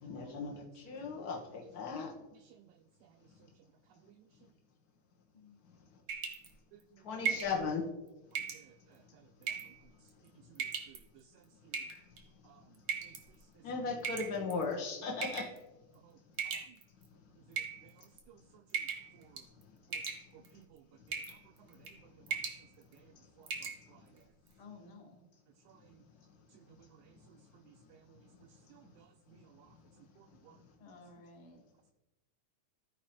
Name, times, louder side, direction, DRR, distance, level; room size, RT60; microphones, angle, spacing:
voice 1, 0.0-2.1 7.0-7.8 13.6-15.5, left 4 dB, 75° left, 0 dB, 0.8 m, -37 dB
voice 2, 2.3-2.6 6.7-6.8 8.5-8.7 9.4-9.5 10.5-11.2 11.7-11.8 12.5-12.6 13.1-13.2 16.0-16.2 16.5-16.6 17.5-17.9 18.3-18.4 19.2-19.4 19.9-20.0 20.3-20.8 21.1-21.2 22.9-23.1 23.4-23.5 23.9-24.0 25.7-26.0 26.8-26.9 27.7-28.2 28.7-29.7 30.4-30.6, right 11 dB, 80° right, 7 dB, 1.8 m, -60 dB
sound 1, 6.1-6.5 7.2-7.6 8.3-8.6 9.4-9.8 10.5-11.0 11.7-12.2 12.9-13.2 14.0-14.6 15.2-15.6 16.4-17.0 17.5-18.2 18.7-19.1 19.4-19.6 19.9-20.5 21.1-21.4 21.7-22.0 22.3-22.6 23.0-23.1 23.5-23.8, right 6 dB, 60° right, 1.2 m, -37 dB
voice 3, 24.6-25.2 30.8-31.6, left 3 dB, 50° left, 2 dB, 1.6 m, -54 dB
14.5 x 4.8 x 4.4 m, 1.0 s
omnidirectional pair, 3.7 m